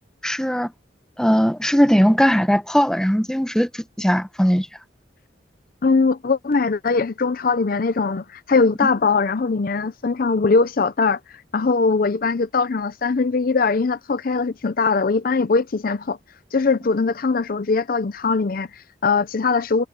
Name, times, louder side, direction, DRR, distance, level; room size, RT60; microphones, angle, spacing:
voice 1, 0.2-0.7 1.2-4.7, equal, 5° left, 1.2 m, -19 dB
voice 2, 5.8-16.2 16.5-19.9, left 4 dB, 50° left, 0.5 m, -21 dB
head